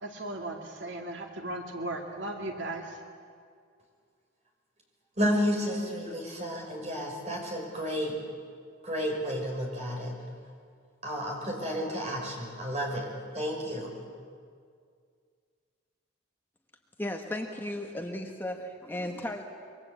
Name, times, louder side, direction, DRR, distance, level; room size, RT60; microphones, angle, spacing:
voice 1, 0.0-2.9, right 1 dB, 70° right, 2 dB, 2.3 m, -36 dB
voice 2, 5.2-8.1 8.8-10.1 11.0-13.1 13.3-13.9, equal, 35° right, 0 dB, 5.7 m, -31 dB
voice 3, 17.0-19.4, left 1 dB, 10° left, 3 dB, 1.2 m, -35 dB
26.0 x 24.0 x 8.2 m, 2.1 s
head